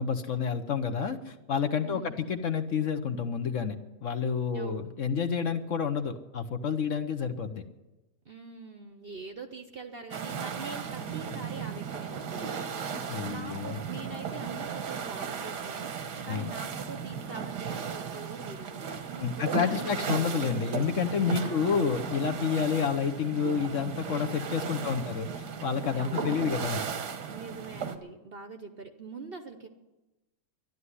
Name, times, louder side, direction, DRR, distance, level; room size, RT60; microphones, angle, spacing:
voice 1, 0.0-7.6 13.1-13.8 16.3-16.5 19.2-25.3 25.6-26.8, left 6 dB, 55° left, 8 dB, 1.1 m, -29 dB
voice 2, 1.8-2.3 4.5-4.9 8.3-12.7 13.0-20.5 21.3-22.1 24.7-25.6 25.9-26.3 27.3-29.7, right 4 dB, 45° right, 6 dB, 0.8 m, -44 dB
sound 1, 10.1-28.0, right 6 dB, 90° right, 1.7 m, -36 dB
12.0 x 11.5 x 9.7 m, 1.1 s
omnidirectional pair, 1.7 m